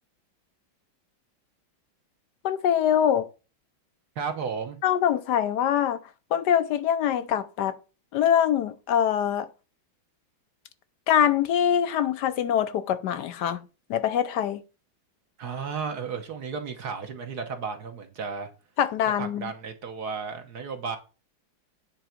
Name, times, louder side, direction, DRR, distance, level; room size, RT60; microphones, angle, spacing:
voice 1, 2.4-3.3 4.8-6.0 6.3-7.8 8.1-9.5 11.1-13.6 13.9-14.6 18.8-19.5, left 9 dB, 70° left, 1.1 m, -24 dB
voice 2, 4.2-4.8 15.4-18.5 19.2-21.0, right 5 dB, 55° right, 1.5 m, -33 dB
9.2 x 3.9 x 5.8 m
omnidirectional pair, 2.2 m